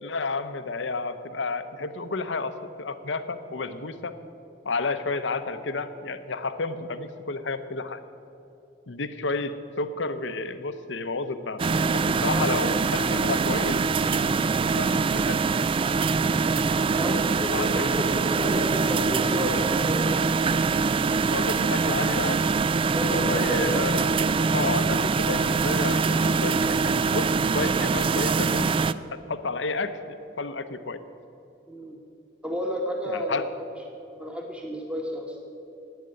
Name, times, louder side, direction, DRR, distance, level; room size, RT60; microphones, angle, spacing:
voice 1, 0.0-4.1 4.6-8.0 8.9-11.6 11.9-13.8 14.7-15.5 17.5-17.8 21.3-22.4 23.1-24.2 24.5-28.8 29.1-31.0 33.1-33.5, left 3 dB, 80° left, 11 dB, 0.8 m, -31 dB
sound 1, 11.6-28.9, right 4 dB, 30° right, 0.3 m, -24 dB
voice 2, 12.2-12.6 17.0-20.2 22.9-23.8 31.7-32.0 32.4-33.5 34.1-35.4, left 1 dB, 5° right, 1 dB, 1.3 m, -31 dB
11.5 x 9.0 x 9.6 m, 2.7 s
head